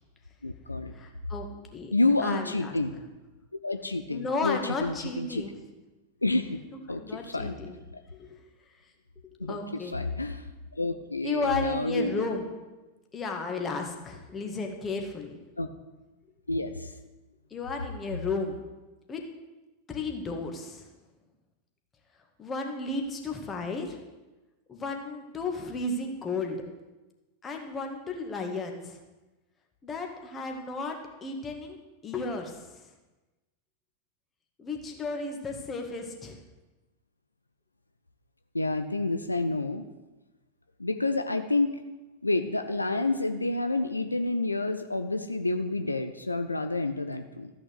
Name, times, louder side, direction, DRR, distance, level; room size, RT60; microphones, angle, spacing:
voice 1, 0.4-0.9 1.9-3.0 3.6-5.4 6.2-6.6 6.9-7.5 9.4-12.3 15.6-15.7 16.5-16.9 38.5-39.9 40.8-41.8 42.2-47.5, left 2 dB, 85° left, 8 dB, 0.6 m, -29 dB
voice 2, 0.9-1.9 2.2-2.8 4.1-5.5 6.9-7.8 8.1-8.4 9.4-9.9 11.2-12.5 13.1-15.4 17.5-18.6 19.1-19.2 19.9-20.9 22.4-24.0 24.7-26.6 27.4-29.0 29.8-32.8 34.6-36.4, left 3 dB, 20° left, 2 dB, 2.0 m, -33 dB
14.0 x 6.3 x 8.1 m, 1.1 s
figure-of-eight pair, 90°, 0 cm